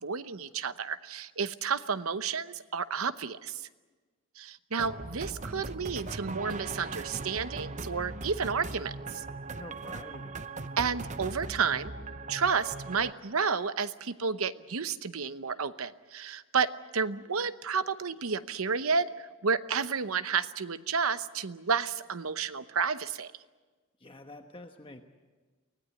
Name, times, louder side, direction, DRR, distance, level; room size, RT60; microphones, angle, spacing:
voice 1, 0.0-3.7 4.4-9.2 10.8-11.9 12.3-23.3, right 5 dB, 85° right, 13 dB, 0.9 m, -31 dB
sound 1, 4.8-13.1, right 3 dB, 35° right, 0.7 m, -39 dB
voice 2, 9.6-10.3 24.0-25.0, left 2 dB, 25° left, 5 dB, 1.1 m, -47 dB
24.0 x 17.5 x 9.6 m, 1.3 s
head